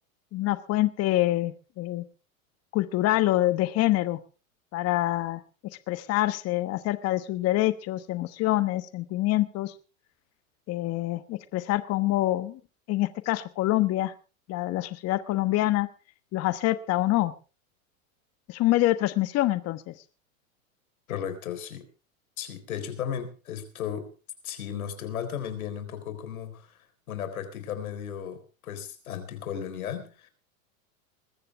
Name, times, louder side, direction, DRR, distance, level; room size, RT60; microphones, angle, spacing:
voice 1, 0.3-2.0 2.7-4.2 4.7-5.4 5.9-9.7 10.7-12.6 12.9-14.1 14.5-15.9 16.3-17.3 18.5-19.9, left 16 dB, 35° left, 1.1 m, -26 dB
voice 2, 21.1-21.9 22.4-24.1 24.4-26.8 27.1-30.3, left 9 dB, 90° left, 4.1 m, -35 dB
21.0 x 14.5 x 3.3 m
supercardioid pair, 120°, 42 cm